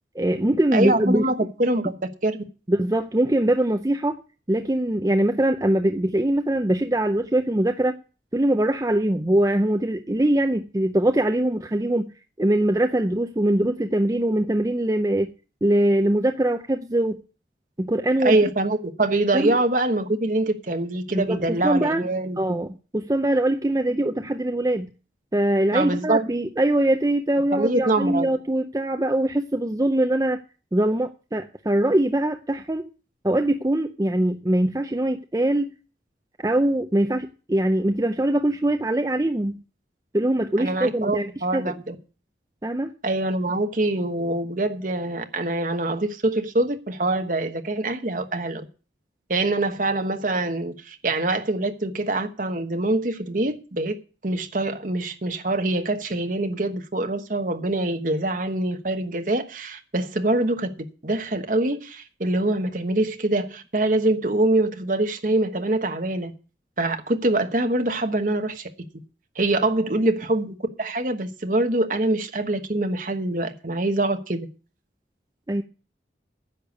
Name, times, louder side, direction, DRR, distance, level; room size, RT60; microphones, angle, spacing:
voice 1, 0.2-1.2 2.7-4.2 4.5-8.0 8.3-12.1 12.4-15.3 15.6-17.2 17.8-18.4 19.3-19.6 21.1-22.0 22.4-24.9 25.3-30.4 30.7-32.9 33.2-35.7 36.4-39.6 40.1-41.3 41.5-41.7 42.6-42.9 75.5-75.6, right 1 dB, 20° right, 0.5 m, -22 dB
voice 2, 0.7-1.9 2.2-2.4 18.2-22.4 25.7-26.3 27.5-28.3 40.6-41.9 43.0-48.6 49.3-54.0 54.2-66.3 66.8-68.7 69.3-74.5, right 2 dB, 45° right, 1.2 m, -24 dB
10.0 x 6.9 x 8.1 m
head